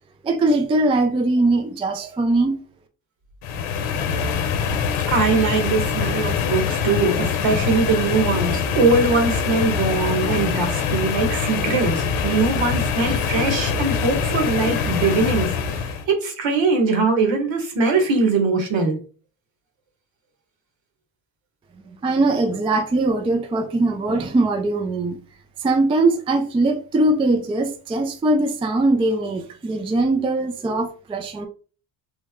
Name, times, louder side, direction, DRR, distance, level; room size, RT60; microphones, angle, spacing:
voice 1, 0.2-2.6 22.0-25.2 25.6-31.5, right 2 dB, 15° right, 0.3 m, -21 dB
sound 1, 3.4-16.1, left 6 dB, 75° left, 0.8 m, -24 dB
voice 2, 5.1-19.0, right 4 dB, 65° right, 1.3 m, -21 dB
3.3 x 2.0 x 3.5 m
cardioid pair, 85°, 49 cm